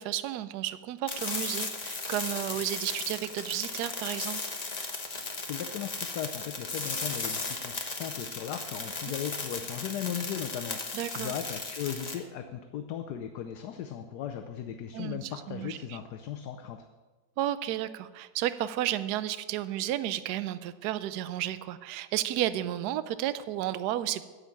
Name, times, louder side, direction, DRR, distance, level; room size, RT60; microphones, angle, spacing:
voice 1, 0.0-4.5 10.9-11.3 14.9-15.2 15.5-16.0 17.4-24.2, right 13 dB, 70° right, 14 dB, 1.1 m, -32 dB
sound 1, 1.1-12.1, left 3 dB, 25° left, 1.0 m, -36 dB
voice 2, 5.4-16.9, left 9 dB, 70° left, 6 dB, 1.2 m, -37 dB
9.9 x 8.1 x 7.2 m, 1.3 s
omnidirectional pair, 1.9 m